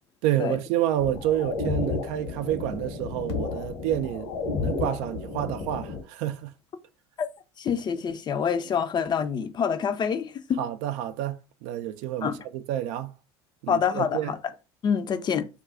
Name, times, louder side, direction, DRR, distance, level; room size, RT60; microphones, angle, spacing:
voice 1, 0.2-4.3 4.6-6.5 10.6-13.1 13.6-14.3, right 12 dB, 55° right, 0.4 m, -29 dB
sound 1, 1.0-6.0, left 4 dB, 65° left, 1.0 m, -32 dB
voice 2, 7.6-10.6 12.2-12.4 13.7-14.4 14.8-15.5, left 7 dB, 30° left, 0.4 m, -26 dB
2.3 x 2.3 x 3.7 m
hypercardioid pair, 70°, 15 cm